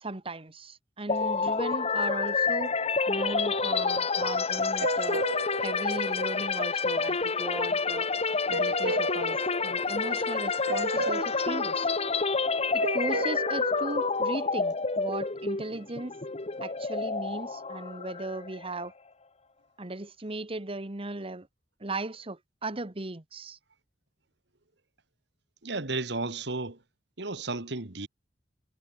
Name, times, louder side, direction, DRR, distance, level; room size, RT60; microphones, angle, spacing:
voice 1, 0.0-2.7 3.1-5.2 5.6-8.1 8.5-11.9 12.7-16.1 16.6-18.9 19.8-21.5 21.8-23.6, right 2 dB, 30° right, 1.4 m, -37 dB
sound 1, 1.1-18.8, left 4 dB, 35° left, 1.1 m, -29 dB
sound 2, 3.2-7.1 8.5-10.4 10.7-15.2, right 3 dB, 80° right, 2.4 m, -37 dB
voice 2, 10.7-11.2 25.6-26.8 27.2-28.1, right 3 dB, 65° right, 2.1 m, -34 dB
head